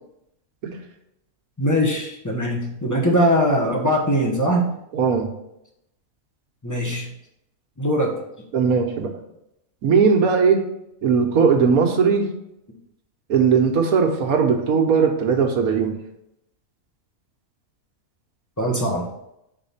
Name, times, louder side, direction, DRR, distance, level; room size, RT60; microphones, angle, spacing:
voice 1, 1.6-4.7 6.6-7.1 7.8-8.1 18.6-19.0, equal, 15° left, -2 dB, 1.1 m, -21 dB
voice 2, 4.9-5.3 8.5-9.1 9.8-10.6 11.0-12.3 13.3-16.0, right 5 dB, 85° right, 3 dB, 1.4 m, -18 dB
5.3 x 4.2 x 5.6 m, 0.82 s
omnidirectional pair, 1.5 m